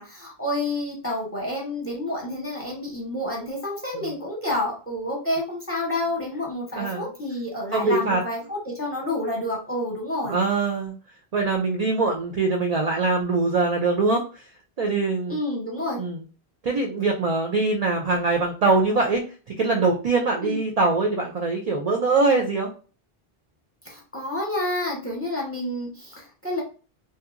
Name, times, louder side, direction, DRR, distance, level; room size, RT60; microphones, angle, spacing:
voice 1, 0.0-10.4 15.3-16.0 20.4-20.6 23.8-26.6, left 1 dB, 15° left, -2 dB, 0.7 m, -29 dB
voice 2, 6.7-7.1 7.7-8.2 10.3-10.9 11.3-14.2 14.8-15.4 16.0-16.2 16.6-19.2 19.6-22.7, right 3 dB, 55° right, 1 dB, 0.4 m, -23 dB
2.8 x 2.3 x 2.5 m, 0.37 s
omnidirectional pair, 1.1 m